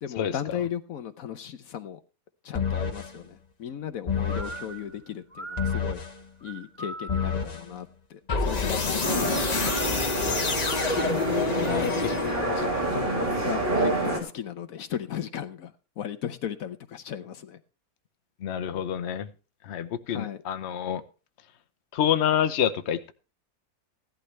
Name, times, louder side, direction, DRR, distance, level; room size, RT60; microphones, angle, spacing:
voice 1, 0.0-2.0 2.4-6.0 6.4-9.4 9.8-10.4 11.6-17.6 20.1-20.4, left 9 dB, 70° left, 1.2 m, -36 dB
sound 1, 2.5-3.1 4.1-4.6 5.6-6.1 7.1-7.6 8.3-12.7, left 4 dB, 30° left, 1.0 m, -27 dB
sound 2, 4.2-7.6 9.6-12.7, right 2 dB, 20° right, 2.8 m, -42 dB
sound 3, 9.0-14.2, right 2 dB, 40° right, 3.3 m, -28 dB
voice 2, 11.6-12.1 18.4-19.3 19.6-21.0 21.9-23.1, left 9 dB, 55° left, 1.0 m, -27 dB
15.5 x 11.5 x 3.3 m
omnidirectional pair, 1.5 m